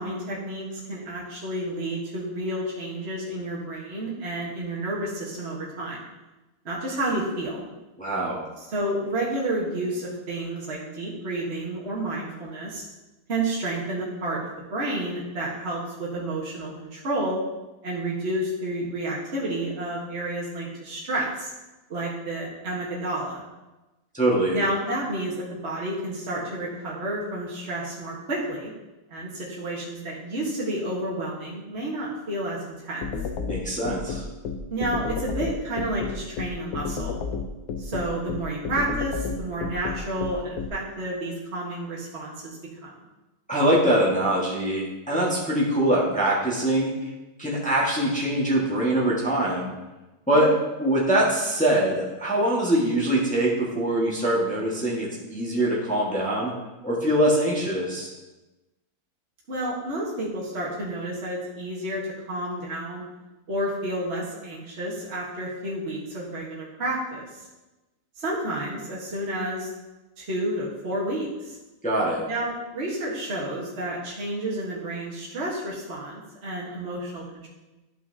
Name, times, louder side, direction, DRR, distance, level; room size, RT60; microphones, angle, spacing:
voice 1, 0.0-6.0 6.6-7.7 8.7-12.8 13.3-17.4 17.8-21.5 21.9-23.4 24.5-28.7 29.1-33.0 34.7-37.2 37.8-42.9 50.3-50.5 59.5-63.0 63.5-67.2 68.2-69.7 70.2-71.6 72.3-77.5, right 1 dB, 45° right, -5 dB, 1.5 m, -30 dB
voice 2, 8.0-8.4 24.1-24.6 33.4-34.2 43.5-47.1 47.4-49.7 50.3-50.5 50.8-56.5 56.8-58.1 71.8-72.2, right 1 dB, 5° left, -6 dB, 1.4 m, -23 dB
sound 1, 33.0-40.7, left 5 dB, 75° left, 1.1 m, -31 dB
11.5 x 5.6 x 2.7 m, 1.1 s
omnidirectional pair, 1.6 m